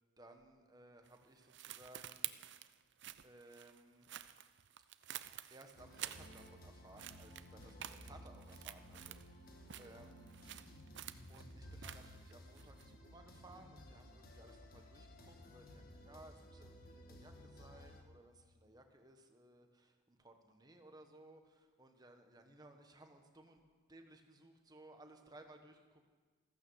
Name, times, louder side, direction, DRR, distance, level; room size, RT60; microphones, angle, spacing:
voice 1, 0.2-2.3 3.2-4.1 5.5-10.4 11.3-23.6 23.9-26.1, right 1 dB, 20° right, 5 dB, 1.3 m, -60 dB
sound 1, 1.1-6.7 7.0-9.3 9.6-13.0, right 12 dB, 55° right, 0.5 m, -50 dB
sound 2, 5.8-18.0, equal, 45° left, 1.6 m, -56 dB
15.0 x 14.5 x 6.3 m, 1.4 s
head